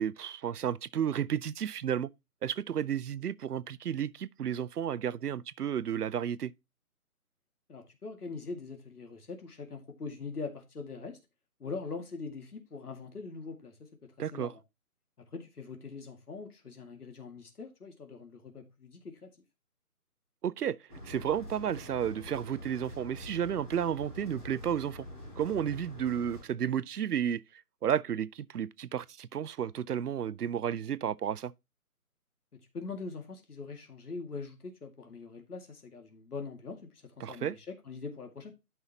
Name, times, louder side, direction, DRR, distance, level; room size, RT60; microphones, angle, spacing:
voice 1, 0.0-2.1 2.4-6.5 14.2-14.5 20.4-20.8 21.0-25.1 25.4-27.4 27.8-31.5 37.2-37.5, right 9 dB, 80° right, 0.7 m, -32 dB
voice 2, 7.7-11.2 11.6-14.6 15.3-19.3 32.5-38.5, left 4 dB, 75° left, 2.1 m, -42 dB
sound 1, 20.9-26.4, left 1 dB, 25° left, 4.4 m, -46 dB
12.5 x 5.7 x 2.8 m
hypercardioid pair, 175°, 45 cm